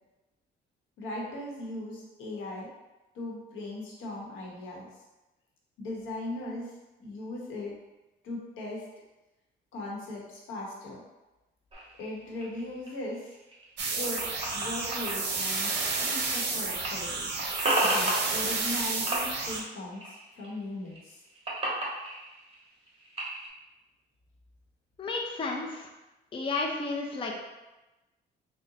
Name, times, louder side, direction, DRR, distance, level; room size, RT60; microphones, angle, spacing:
voice 1, 1.0-2.7 3.1-4.9 5.8-6.7 7.0-7.7 8.2-8.8 9.7-11.0 12.0-13.3 14.0-14.2 14.5-15.7 16.0-17.3 17.8-21.2, left 1 dB, 85° left, -3 dB, 1.0 m, -38 dB
sound 1, 11.7-16.5 16.7-18.8 19.1-20.5 20.8-23.5, right 1 dB, 30° right, 1.2 m, -34 dB
sound 2, 13.8-19.6, right 3 dB, 60° right, 0.7 m, -31 dB
voice 2, 25.0-25.9 26.3-27.4, left 3 dB, 25° left, 0 dB, 0.5 m, -32 dB
3.9 x 2.1 x 3.8 m, 1.1 s
cardioid pair, 90°, 20 cm